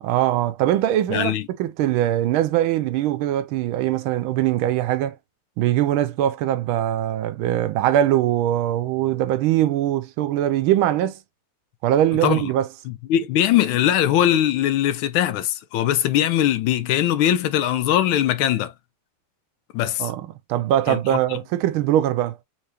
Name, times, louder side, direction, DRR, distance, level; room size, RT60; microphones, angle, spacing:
voice 1, 0.0-1.3 1.6-5.2 5.6-11.2 11.8-12.7 20.0-22.4, right 12 dB, 90° right, 1.4 m, -21 dB
voice 2, 1.1-1.5 12.2-12.5 12.9-18.7 19.7-20.1 20.9-21.4, left 11 dB, 85° left, 1.4 m, -21 dB
4.5 x 2.9 x 2.8 m
omnidirectional pair, 2.2 m